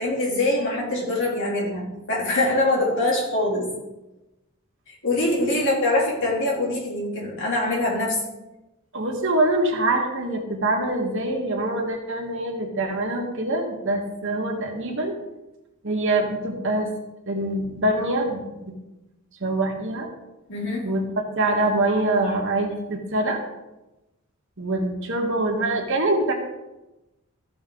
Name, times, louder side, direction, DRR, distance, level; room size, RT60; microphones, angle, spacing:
voice 1, 0.0-3.7 4.9-8.2 20.5-20.9, left 2 dB, 60° left, -2 dB, 3.0 m, -24 dB
voice 2, 8.9-15.1 15.8-16.9 17.3-18.7 19.4-20.1 20.8-23.4 24.6-26.3, right 2 dB, 60° right, 1 dB, 1.8 m, -24 dB
14.5 x 6.1 x 3.9 m, 1.0 s
head